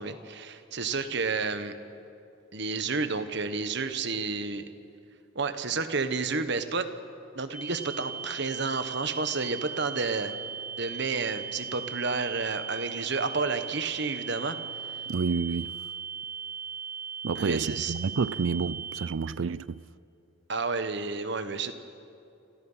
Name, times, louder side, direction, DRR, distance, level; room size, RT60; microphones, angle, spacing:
voice 1, 0.0-1.8 2.5-4.7 5.3-6.9 7.3-10.3 10.8-14.6 17.4-17.9 20.5-21.7, right 4 dB, 65° right, 1.5 m, -30 dB
sound 1, 7.5-19.1, right 7 dB, 5° right, 6.2 m, -38 dB
voice 2, 15.1-15.8 17.2-19.9, right 5 dB, 85° right, 0.5 m, -29 dB
27.5 x 27.5 x 5.8 m
head